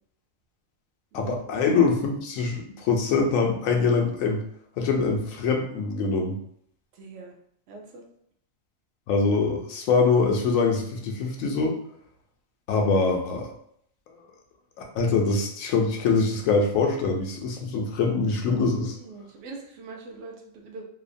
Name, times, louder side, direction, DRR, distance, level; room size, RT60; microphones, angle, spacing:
voice 1, 1.1-4.4 4.8-6.4 9.1-11.8 12.7-13.5 14.9-19.0, left 4 dB, 90° left, 2 dB, 1.0 m, -24 dB
voice 2, 6.9-7.4 7.7-8.0 19.0-20.8, right 3 dB, 70° right, 1 dB, 0.9 m, -42 dB
2.8 x 2.0 x 2.5 m, 0.66 s
omnidirectional pair, 1.4 m